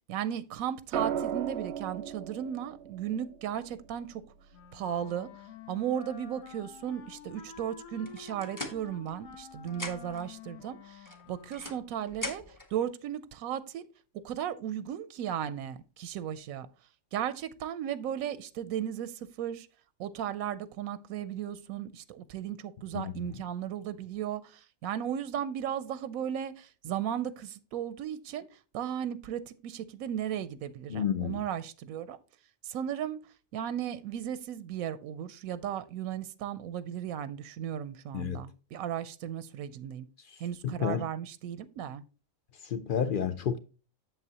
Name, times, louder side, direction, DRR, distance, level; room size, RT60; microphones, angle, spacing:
voice 1, 0.1-4.2 4.7-5.3 5.7-12.4 12.7-13.8 14.2-16.7 17.1-19.7 20.0-28.5 28.7-32.2 32.6-33.2 33.5-40.1 40.4-42.0, right 10 dB, 90° right, 1.0 m, -35 dB
sound 1, 0.9-5.1 6.8-7.1, right 8 dB, 60° right, 0.8 m, -37 dB
Wind instrument woodwind instrument, 4.5-12.0, left 7 dB, 85° left, 1.3 m, -49 dB
sound 2, 8.0-9.4 9.7-10.3 11.0-12.7, left 2 dB, 15° left, 0.8 m, -41 dB
voice 2, 30.9-31.4 38.1-38.4 40.6-41.1 42.6-43.6, left 8 dB, 65° left, 0.5 m, -30 dB
8.0 x 7.3 x 2.8 m
omnidirectional pair, 1.4 m